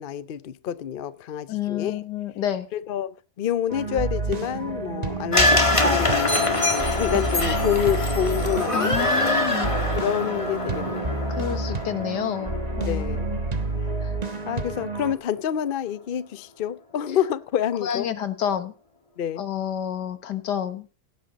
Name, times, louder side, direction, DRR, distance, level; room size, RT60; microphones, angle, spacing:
voice 1, 0.0-2.0 2.7-9.0 10.0-11.2 12.9-13.3 14.5-18.1 19.2-19.4, left 10 dB, 65° left, 0.5 m, -28 dB
voice 2, 1.5-2.7 8.7-9.7 11.4-13.4 14.0-14.1 17.8-18.7 19.4-20.9, left 9 dB, 80° left, 1.8 m, -29 dB
sound 1, 3.7-15.1, right 3 dB, 25° right, 1.1 m, -29 dB
sound 2, 5.3-13.6 13.9-14.0, left 2 dB, 20° left, 1.8 m, -24 dB
17.0 x 8.6 x 4.1 m
omnidirectional pair, 1.8 m